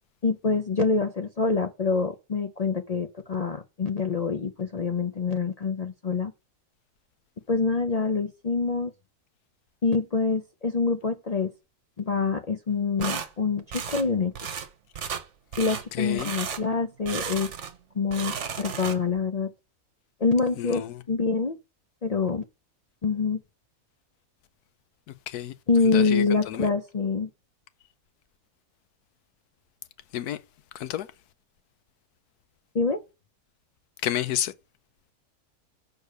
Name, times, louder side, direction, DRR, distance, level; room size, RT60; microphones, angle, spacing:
voice 1, 0.2-6.3 7.5-8.9 9.8-11.5 12.0-14.3 15.6-17.5 18.0-19.5 20.2-21.6 22.0-22.4 23.0-23.4 25.7-27.3 32.7-33.0, left 4 dB, 70° left, 0.3 m, -26 dB
sound 1, 13.0-13.3 13.7-14.1 14.3-14.7 14.9-15.2 15.5-15.8 16.2-16.6 17.0-17.8 18.0-19.2, right 7 dB, 55° right, 1.2 m, -33 dB
voice 2, 15.9-16.3 20.6-21.0 25.1-25.5 25.8-26.7 30.1-30.4 30.7-31.1 34.0-34.5, left 12 dB, 90° left, 1.2 m, -31 dB
6.5 x 4.6 x 6.5 m
omnidirectional pair, 1.6 m